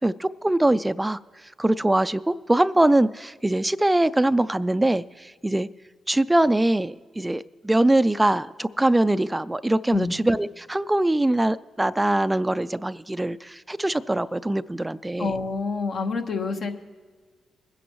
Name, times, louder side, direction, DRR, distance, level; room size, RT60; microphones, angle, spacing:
voice 1, 0.0-5.7 6.1-15.3, right 1 dB, 15° right, 15 dB, 0.3 m, -23 dB
voice 2, 15.2-16.7, left 4 dB, 65° left, 5 dB, 1.2 m, -27 dB
21.5 x 10.0 x 3.1 m, 1.5 s
cardioid pair, 70°, 0 cm